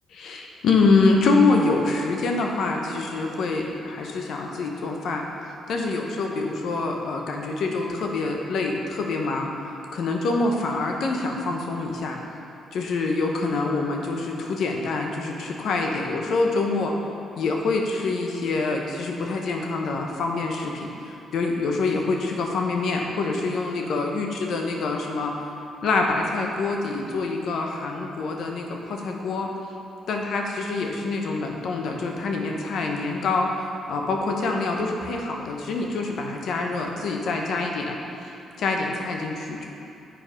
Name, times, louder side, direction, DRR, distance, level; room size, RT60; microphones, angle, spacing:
voice 1, 0.1-5.3 5.7-9.5 9.9-12.2 12.7-16.9 17.3-25.4 25.8-29.5 30.1-38.0 38.6-39.7, left 3 dB, 70° left, 1 dB, 0.9 m, -25 dB
7.6 x 4.7 x 5.1 m, 2.7 s
cardioid pair, 90°, 0 cm